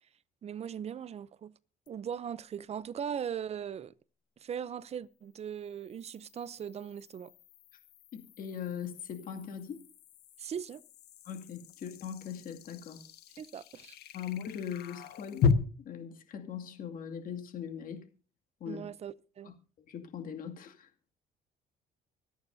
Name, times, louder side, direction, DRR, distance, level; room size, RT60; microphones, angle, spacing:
voice 1, 0.4-1.5 1.9-3.9 4.4-7.3 10.4-10.8 13.4-14.0 18.7-19.5, right 8 dB, 40° right, 0.5 m, -39 dB
sound 1, 1.9-2.0 5.4-15.5, left 7 dB, 70° left, 1.2 m, -38 dB
voice 2, 8.1-9.8 11.3-13.0 14.1-15.5 15.8-18.1 18.6-18.9 19.5-19.6 19.9-20.9, left 8 dB, 55° left, 2.4 m, -40 dB
25.5 x 9.1 x 2.7 m
cardioid pair, 110°, 17 cm